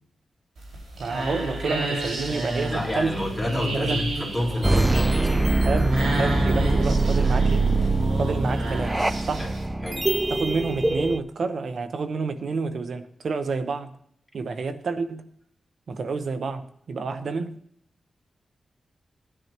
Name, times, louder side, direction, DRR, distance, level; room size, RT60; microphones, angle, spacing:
sound 1, 0.6-9.7, right 1 dB, 85° right, 4.7 m, -31 dB
voice 1, 1.0-3.1 3.7-4.0 5.6-7.7 8.2-9.4 10.3-14.0 14.3-15.3 15.9-17.6, right 4 dB, 70° right, 10 dB, 0.9 m, -29 dB
voice 2, 2.7-5.6 9.4-9.5 9.8-10.1, left 1 dB, 5° left, -3 dB, 4.6 m, -29 dB
sound 2, 4.6-11.2, right 2 dB, 15° right, 0.5 m, -23 dB
17.0 x 9.9 x 3.0 m, 0.65 s
cardioid pair, 85°, 0 cm